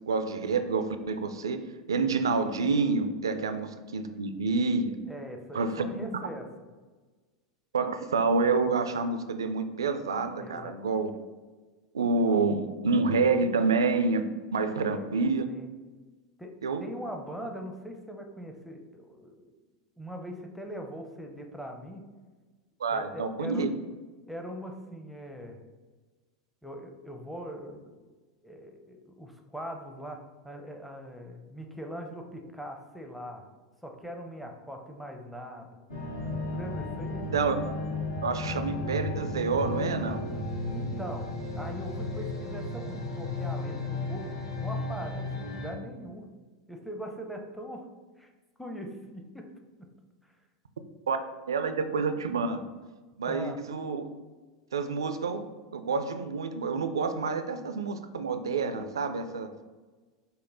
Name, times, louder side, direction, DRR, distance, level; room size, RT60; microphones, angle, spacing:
voice 1, 0.1-1.6 1.9-4.9 5.5-6.1 7.7-11.1 11.9-14.2 14.5-15.5 16.6-16.8 22.8-23.7 37.3-37.6 38.2-40.2 51.1-51.2 51.5-52.6 53.2-54.1 54.7-55.5 55.7-59.5, right 4 dB, 75° right, 8 dB, 0.3 m, -28 dB
voice 2, 5.1-6.5 10.4-10.8 14.7-15.1 15.5-15.7 16.4-19.5 20.0-22.1 22.9-23.7 24.3-25.6 26.6-28.1 28.4-33.4 33.8-35.8 36.5-37.3 40.7-41.3 41.5-46.3 46.7-47.9 48.2-48.3 48.6-49.5 49.8-49.9 50.2-50.3 53.2-53.6, equal, ahead, 2 dB, 0.6 m, -41 dB
sound 1, 35.9-45.7, left 2 dB, 80° left, 1.0 m, -34 dB
5.3 x 2.1 x 3.9 m, 1.3 s
figure-of-eight pair, 85°, 2 cm